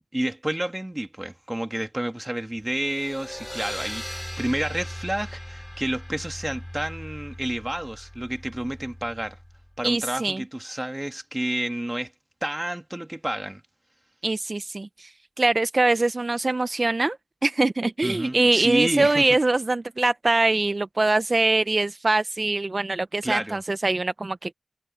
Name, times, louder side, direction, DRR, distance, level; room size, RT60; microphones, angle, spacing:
voice 1, 0.1-9.4 9.8-12.1 12.4-13.6 18.0-19.4 23.2-23.6, right 1 dB, 25° right, 2.1 m, -30 dB
sound 1, 2.7-9.7, equal, 10° left, 5.5 m, -39 dB
voice 2, 9.8-10.4 14.2-17.2 17.4-24.5, right 2 dB, 65° right, 0.5 m, -23 dB
wide cardioid pair, 45°, 0 cm